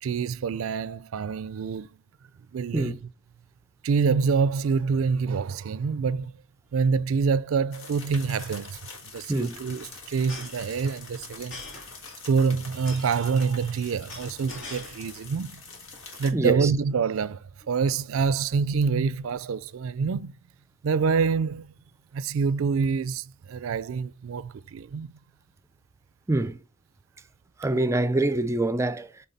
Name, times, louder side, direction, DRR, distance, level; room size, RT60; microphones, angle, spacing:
voice 1, 0.0-1.9 2.5-3.0 3.8-6.3 6.7-8.8 9.1-11.6 12.3-15.6 16.2-20.3 20.8-21.7 22.1-25.1, right 5 dB, 80° right, 0.4 m, -26 dB
sound 1, 6.7-6.9 7.2-7.3 7.5-7.8 8.7-15.3 15.7-16.2, left 2 dB, 60° left, 2.9 m, -45 dB
sound 2, 7.7-16.3, left 4 dB, 80° left, 1.6 m, -45 dB
voice 2, 16.3-16.7 26.3-26.6 27.6-29.3, right 2 dB, 15° right, 0.4 m, -25 dB
7.8 x 3.8 x 4.2 m
head